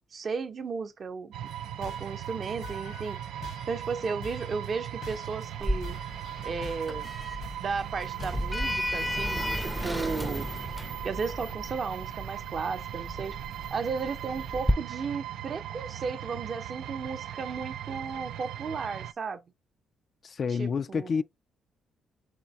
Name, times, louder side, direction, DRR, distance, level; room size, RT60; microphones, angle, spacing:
voice 1, 0.1-1.3 1.8-3.2 3.7-6.0 6.4-7.1 7.6-10.5 11.0-13.4 13.7-19.4 20.5-21.1, right 5 dB, 45° right, 0.6 m, -34 dB
sound 1, 1.3-19.1, right 11 dB, 80° right, 0.3 m, -39 dB
sound 2, 1.5-9.8, left 5 dB, 75° left, 1.3 m, -47 dB
Sliding door, 5.6-14.7, equal, ahead, 0.5 m, -33 dB
voice 2, 20.2-21.2, left 5 dB, 50° left, 0.3 m, -29 dB
3.6 x 3.3 x 4.0 m
cardioid pair, 90°, 0 cm